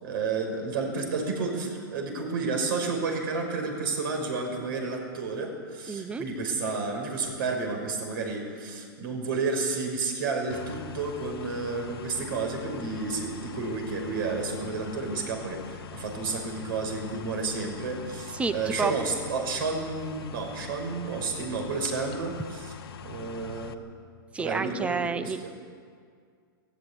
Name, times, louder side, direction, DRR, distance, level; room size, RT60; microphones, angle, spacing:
voice 1, 0.0-22.7 23.0-23.7 24.4-25.5, right 4 dB, 65° right, 3 dB, 5.8 m, -31 dB
voice 2, 5.9-6.2 18.3-18.9 24.3-25.5, right 4 dB, 10° right, 12 dB, 0.8 m, -30 dB
sound 1, 10.5-23.7, left 8 dB, 85° left, 1.4 m, -43 dB
18.0 x 15.0 x 9.9 m, 2.1 s
hypercardioid pair, 145°, 12 cm